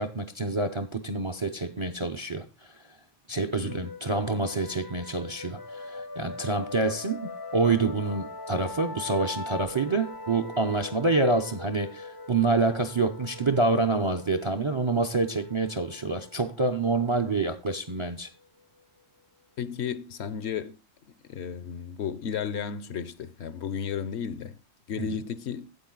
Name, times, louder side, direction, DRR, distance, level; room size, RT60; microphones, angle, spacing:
voice 1, 0.0-2.4 2.7-2.8 3.3-18.3 25.0-25.2, right 3 dB, 35° right, 0.5 m, -27 dB
voice 2, 3.6-3.9 19.6-20.8 21.3-24.6 24.9-25.7, left 7 dB, 65° left, 0.8 m, -33 dB
sound 1, 3.7-19.0, left 2 dB, 25° left, 0.5 m, -42 dB
8.9 x 7.9 x 3.8 m
omnidirectional pair, 1.3 m